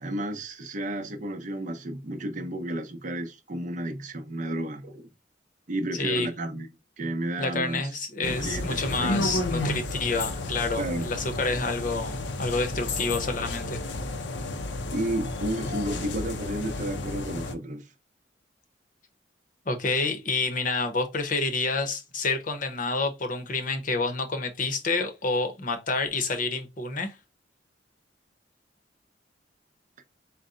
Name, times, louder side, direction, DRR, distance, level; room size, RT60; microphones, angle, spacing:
voice 1, 0.0-5.1 5.7-6.7 7.0-7.8 8.2-9.4 10.8-11.1 14.9-17.9, right 1 dB, 45° right, 0.7 m, -32 dB
voice 2, 5.9-6.3 7.4-13.8 19.7-27.1, left 3 dB, 45° left, 0.8 m, -28 dB
sound 1, 8.2-17.5, left 2 dB, 75° left, 0.6 m, -32 dB
4.0 x 2.1 x 3.7 m
head